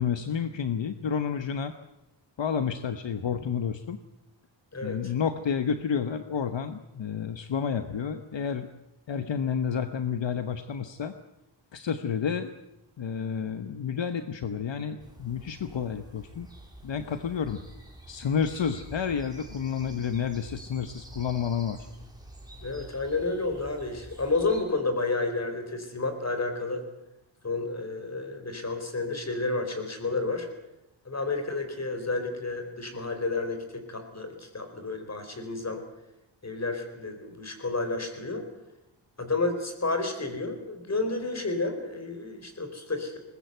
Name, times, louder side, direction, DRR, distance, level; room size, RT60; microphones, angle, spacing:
voice 1, 0.0-1.7 2.4-4.0 4.8-8.7 9.1-11.1 11.7-12.5 13.0-16.5 16.8-17.6 18.1-21.9, left 7 dB, 70° left, 9 dB, 1.1 m, -30 dB
voice 2, 4.7-5.1 22.6-26.9 27.4-30.5 31.0-35.8 36.4-38.5 39.2-43.2, left 3 dB, 35° left, 7 dB, 4.2 m, -31 dB
sound 1, 15.0-24.6, right 1 dB, 10° right, 4.6 m, -47 dB
21.5 x 20.0 x 8.0 m, 0.91 s
wide cardioid pair, 110°, 46 cm